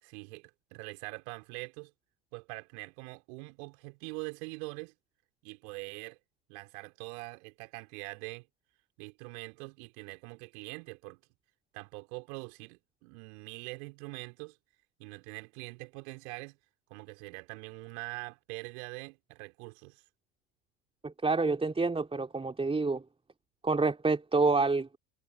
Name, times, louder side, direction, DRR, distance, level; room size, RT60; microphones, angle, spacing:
voice 1, 0.0-1.9 2.3-4.9 5.4-6.2 6.5-8.5 9.0-11.2 11.7-14.6 15.0-16.6 16.9-20.0, right 31 dB, 55° right, 5.4 m, -43 dB
voice 2, 21.0-23.0 23.6-24.9, right 3 dB, 10° right, 3.3 m, -28 dB
figure-of-eight pair, 75°, 49 cm